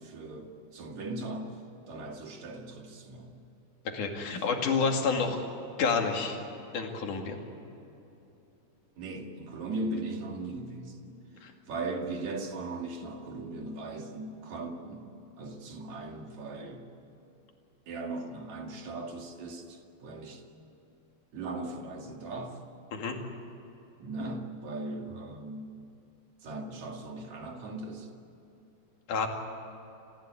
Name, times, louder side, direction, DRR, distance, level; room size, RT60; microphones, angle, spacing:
voice 1, 0.0-1.6 1.9-3.3 4.2-4.5 4.8-5.4 9.0-11.0 11.7-16.9 17.9-20.4 21.3-22.6 24.0-25.8 26.4-28.1, right 2 dB, 65° right, 2 dB, 3.6 m, -38 dB
voice 2, 3.9-5.4 5.8-6.4 6.7-7.4 11.4-11.5 22.9-23.2 29.1-29.3, left 5 dB, 80° left, 3 dB, 3.9 m, -29 dB
29.0 x 16.0 x 9.3 m, 3.0 s
omnidirectional pair, 3.5 m